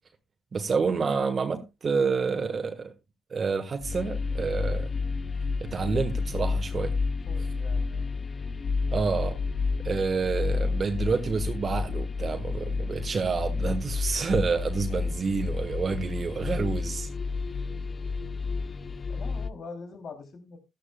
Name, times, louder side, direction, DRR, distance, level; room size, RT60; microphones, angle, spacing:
voice 1, 0.5-2.9 3.3-4.9 5.6-6.9 8.9-9.4 9.8-17.1, right 5 dB, 45° right, 1.4 m, -28 dB
sound 1, 3.8-19.5, left 4 dB, 40° left, 0.7 m, -30 dB
voice 2, 7.3-8.1 19.1-20.6, left 4 dB, 55° left, 3.1 m, -43 dB
15.0 x 12.0 x 2.3 m
supercardioid pair, 55°, 0 cm